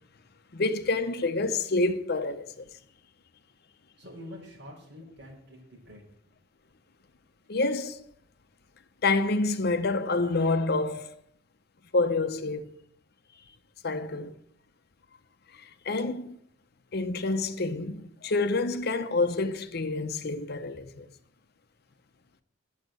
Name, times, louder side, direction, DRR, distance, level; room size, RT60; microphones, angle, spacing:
voice 1, 0.5-2.6 7.5-8.0 9.0-11.2 11.9-12.8 13.8-14.3 15.6-16.4 16.9-21.1, left 3 dB, 55° left, 0.9 m, -28 dB
voice 2, 4.0-6.1, left 1 dB, 60° right, 5.3 m, -46 dB
9.6 x 7.3 x 7.9 m
head